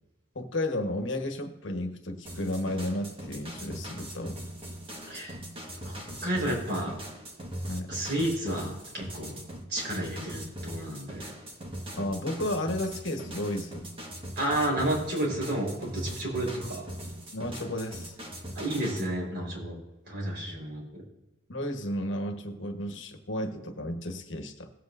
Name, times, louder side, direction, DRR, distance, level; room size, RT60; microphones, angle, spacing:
voice 1, 0.3-4.4 7.7-7.9 12.0-13.9 17.3-18.1 21.5-24.7, left 1 dB, 70° left, 5 dB, 1.3 m, -33 dB
sound 1, 2.3-19.1, right 1 dB, 30° right, 1.4 m, -41 dB
voice 2, 5.8-6.9 7.9-9.4 9.7-11.3 14.4-16.8 18.5-19.7 20.1-21.0, right 1 dB, 55° right, -2 dB, 4.3 m, -31 dB
18.0 x 8.1 x 2.6 m, 1.0 s
head